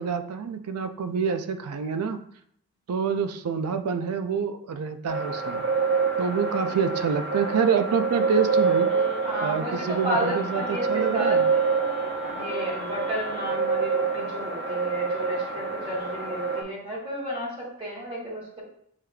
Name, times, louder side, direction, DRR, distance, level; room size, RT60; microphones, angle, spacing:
voice 1, 0.0-2.2 2.9-5.6 6.2-8.9 9.4-11.5, right 6 dB, 90° right, 10 dB, 0.4 m, -27 dB
sound 1, 5.1-16.6, right 5 dB, 50° right, 0.7 m, -27 dB
sound 2, 8.1-9.5 9.9-13.5, left 4 dB, 75° left, 1.0 m, -41 dB
voice 2, 9.2-11.8 12.3-18.6, equal, 25° right, -6 dB, 1.3 m, -32 dB
7.3 x 3.2 x 2.3 m, 0.69 s
head